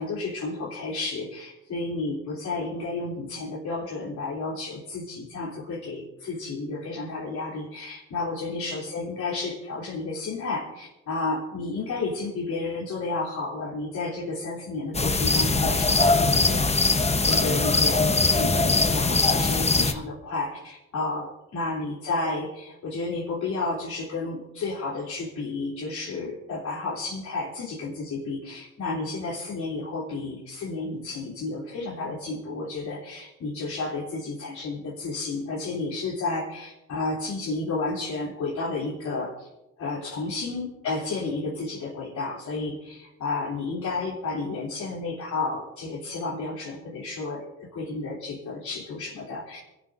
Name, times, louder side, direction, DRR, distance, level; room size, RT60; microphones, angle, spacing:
voice 1, 0.0-16.9 17.3-39.5 39.8-49.6, left 3 dB, 70° left, -5 dB, 3.5 m, -32 dB
sound 1, 14.9-19.9, left 3 dB, 20° left, 1.1 m, -21 dB
26.5 x 13.0 x 2.7 m, 0.96 s
cardioid pair, 90°, 30 cm